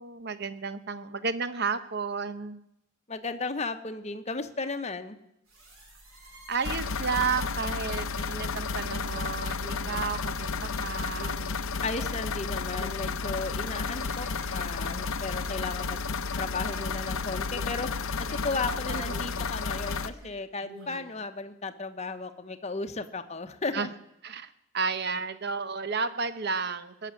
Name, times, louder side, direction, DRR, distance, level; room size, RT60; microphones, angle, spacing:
voice 1, 0.0-2.6 6.5-11.4 18.7-19.2 23.7-23.9 24.2-27.1, right 5 dB, 50° right, 12 dB, 0.9 m, -32 dB
voice 2, 3.1-5.2 11.8-16.0 16.4-23.9, left 3 dB, 30° left, 7 dB, 0.9 m, -35 dB
sound 1, 5.5-16.3 16.7-19.6 19.8-21.2, equal, 75° right, 5.9 m, -49 dB
sound 2, 6.6-20.1, left 4 dB, 75° left, 0.7 m, -32 dB
19.0 x 6.9 x 9.7 m, 0.83 s
head